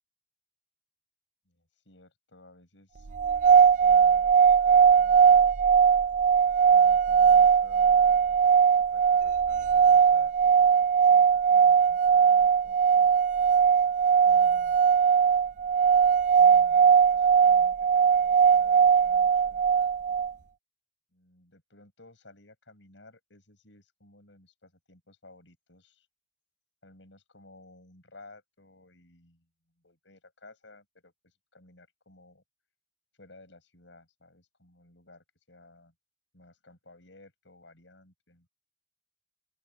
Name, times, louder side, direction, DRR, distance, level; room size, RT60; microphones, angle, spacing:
voice 1, 1.5-3.2 3.8-5.5 6.7-8.4 8.9-13.1 14.2-15.5 16.4-19.6 21.1-26.1 26.8-29.5 29.8-32.4 33.2-35.9 36.3-38.5, left 2 dB, 75° left, 7.4 m, -56 dB
sound 1, 3.1-20.3, right 7 dB, 40° right, 0.4 m, -20 dB
open air
head